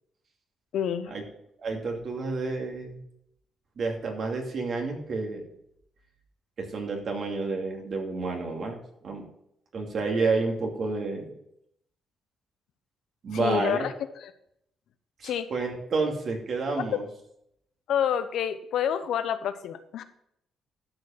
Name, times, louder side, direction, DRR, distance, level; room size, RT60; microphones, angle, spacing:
voice 1, 0.7-1.1 13.3-13.9 14.2-14.3 15.2-15.5 16.8-16.9 17.9-20.0, left 9 dB, 75° left, 11 dB, 0.8 m, -28 dB
voice 2, 1.6-3.0 3.8-5.4 6.6-8.8 9.0-9.3 9.7-11.3 13.2-13.9 15.2-17.0, right 3 dB, 55° right, 1 dB, 2.5 m, -30 dB
12.0 x 5.3 x 5.9 m, 0.76 s
cardioid pair, 90°, 0 cm